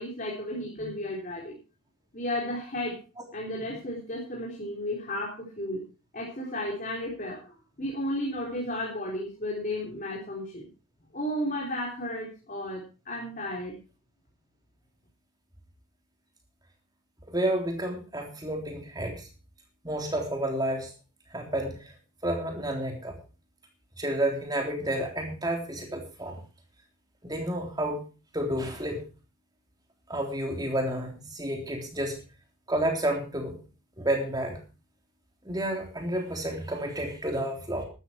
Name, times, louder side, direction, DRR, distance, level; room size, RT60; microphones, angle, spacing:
voice 1, 0.0-1.6 2.1-3.0 3.3-5.8 6.1-10.7 11.1-13.8, left 1 dB, 35° left, -2 dB, 4.0 m, -33 dB
voice 2, 17.3-19.3 19.8-20.9 21.3-21.9 22.2-23.2 24.0-26.4 27.2-28.0 28.3-29.0 30.1-32.2 32.7-33.6 34.0-34.6 35.5-37.9, right 1 dB, 20° right, 2 dB, 3.5 m, -30 dB
13.5 x 12.5 x 4.6 m, 0.33 s
head